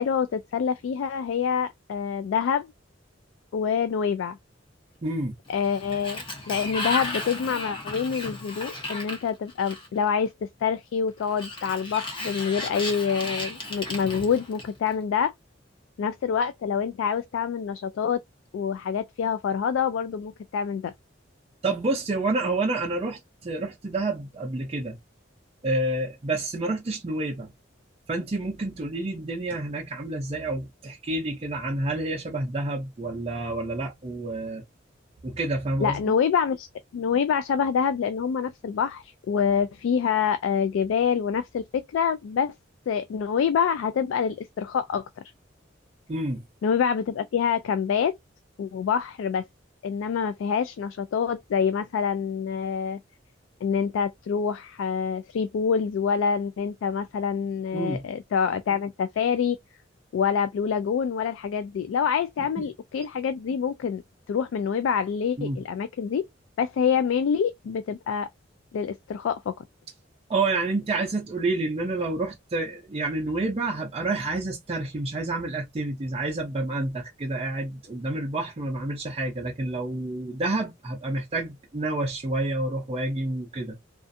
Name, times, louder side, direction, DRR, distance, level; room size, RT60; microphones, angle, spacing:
voice 1, 0.0-2.7 3.5-4.4 5.5-15.3 16.0-18.2 18.5-20.9 35.8-36.7 36.9-42.5 42.9-45.1 46.6-48.2 48.6-49.5 49.8-53.0 53.6-59.6 60.1-64.0 64.3-66.3 66.6-68.3 68.7-69.6, left 7 dB, 80° left, 0.3 m, -26 dB
voice 2, 5.0-5.3 21.6-25.0 25.6-27.5 28.1-34.6 35.2-36.0 46.1-46.4 57.7-58.0 62.6-62.7 65.4-65.6 70.3-83.8, right 2 dB, 30° right, 0.5 m, -29 dB
Sliding door, 5.5-10.1 11.2-14.9, left 2 dB, 25° left, 0.8 m, -34 dB
2.5 x 2.4 x 2.5 m
head